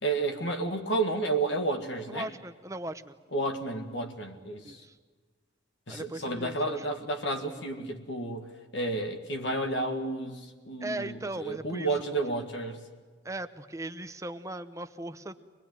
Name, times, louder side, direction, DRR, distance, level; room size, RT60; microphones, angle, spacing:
voice 1, 0.0-2.3 3.3-4.8 5.9-12.8, right 2 dB, 65° left, 5 dB, 2.0 m, -31 dB
voice 2, 2.1-3.2 4.6-4.9 5.9-7.0 10.8-11.9 13.2-15.4, right 1 dB, 15° right, 10 dB, 0.8 m, -38 dB
25.0 x 20.0 x 9.4 m, 1.5 s
head